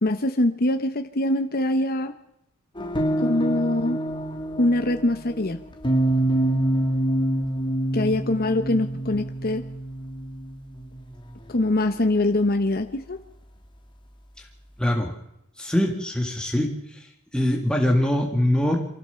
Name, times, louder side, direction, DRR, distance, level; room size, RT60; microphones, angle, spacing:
voice 1, 0.0-2.1 3.2-4.0 4.6-5.6 7.9-9.6 11.5-13.2, left 1 dB, 45° left, 8 dB, 1.0 m, -23 dB
sound 1, 2.8-11.6, right 1 dB, 20° left, 2.4 m, -26 dB
voice 2, 14.8-15.1 15.6-17.1 17.3-18.9, left 1 dB, 5° left, 1 dB, 2.0 m, -23 dB
24.0 x 15.5 x 7.0 m, 0.80 s
head